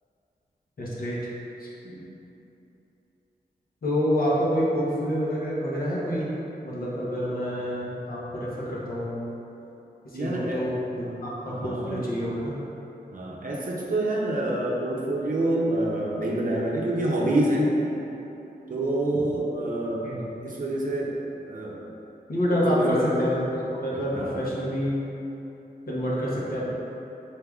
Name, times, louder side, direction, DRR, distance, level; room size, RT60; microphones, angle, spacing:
voice 1, 0.8-1.2 1.6-1.7 3.8-6.3 6.6-9.2 10.1-12.5 20.0-20.2 22.3-25.0 25.9-26.7, equal, 60° left, -7 dB, 1.0 m, -27 dB
voice 2, 10.1-10.7 11.4-12.0 13.1-17.7 18.7-20.1 20.4-21.1 21.5-21.8 22.5-23.3 23.9-24.5, right 1 dB, 55° right, -4 dB, 0.7 m, -27 dB
4.6 x 3.4 x 2.4 m, 3.0 s
cardioid pair, 65°, 17 cm